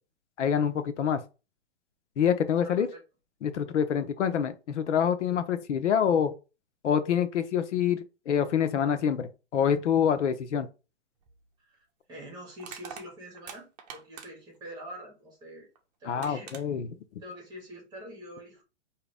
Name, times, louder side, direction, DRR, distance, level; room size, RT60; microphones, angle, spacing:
voice 1, 0.4-1.2 2.2-2.9 3.4-6.3 6.8-10.7 16.1-16.9, left 8 dB, 80° left, 0.8 m, -26 dB
voice 2, 2.6-3.0 11.6-15.7 16.0-16.5 17.2-18.6, equal, 10° right, 1.9 m, -45 dB
Crushing, 11.2-11.4 12.6-14.6 15.8-15.9 16.2-16.6, right 7 dB, 35° right, 0.8 m, -44 dB
4.9 x 2.9 x 3.5 m
hypercardioid pair, 160°, 35 cm